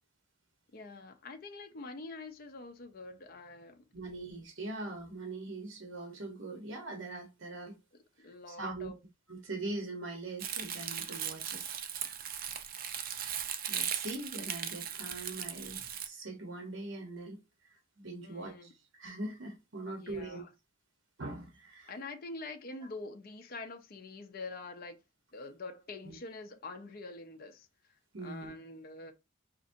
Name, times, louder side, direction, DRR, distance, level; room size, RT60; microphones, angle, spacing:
voice 1, 0.7-3.8 8.2-9.0 18.2-18.7 20.0-20.5 21.9-25.0 25.3-27.7 28.2-29.1, left 3 dB, 45° left, 0.5 m, -45 dB
voice 2, 3.9-7.8 8.2-8.9 9.3-11.6 13.7-20.4 21.2-21.9 26.0-26.2 28.1-28.5, right 2 dB, 65° right, 0.9 m, -42 dB
Crumpling crinkling, 10.4-16.1, right 9 dB, 45° right, 0.5 m, -38 dB
4.9 x 2.6 x 2.6 m
head